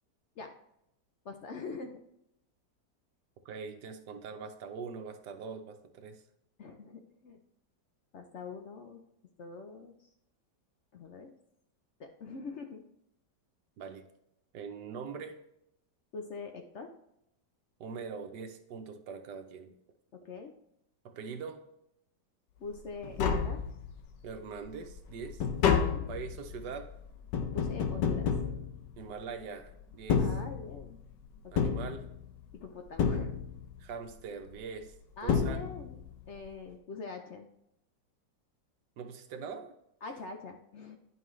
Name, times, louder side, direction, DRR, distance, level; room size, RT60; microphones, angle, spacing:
voice 1, 1.2-2.0 6.6-7.4 8.1-9.0 9.4-10.1 10.9-11.3 12.0-12.8 16.1-16.9 20.2-20.5 22.6-23.6 25.7-26.1 27.5-28.4 30.2-31.0 31.6-31.8 32.5-33.3 35.2-37.5 40.0-41.0, left 4 dB, 65° left, 5 dB, 0.7 m, -44 dB
voice 2, 3.4-6.2 13.8-14.0 14.5-15.4 17.8-19.7 21.0-21.6 24.2-25.5 26.1-26.9 29.0-30.3 31.5-32.0 33.8-34.9 35.2-35.6 39.0-39.7, right 5 dB, 70° right, 7 dB, 1.4 m, -42 dB
Tap, 22.8-22.9 23.0-24.1 24.6-29.3 29.9-31.0 31.6-32.5 33.0-33.8 34.8-34.9 35.3-36.1 36.4-36.5, left 6 dB, 80° left, 1.4 m, -30 dB
10.0 x 5.6 x 3.2 m, 0.80 s
omnidirectional pair, 1.9 m